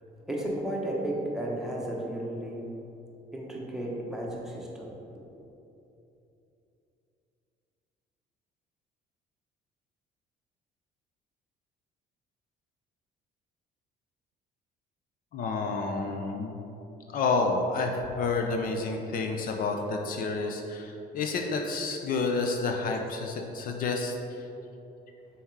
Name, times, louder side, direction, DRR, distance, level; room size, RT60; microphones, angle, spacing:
voice 1, 0.2-2.8 3.3-5.0, right 1 dB, 5° right, -4 dB, 1.2 m, -33 dB
voice 2, 15.3-16.6 17.1-24.1, left 3 dB, 55° left, 2 dB, 0.6 m, -29 dB
5.6 x 4.3 x 4.7 m, 2.9 s
cardioid pair, 110°, 17 cm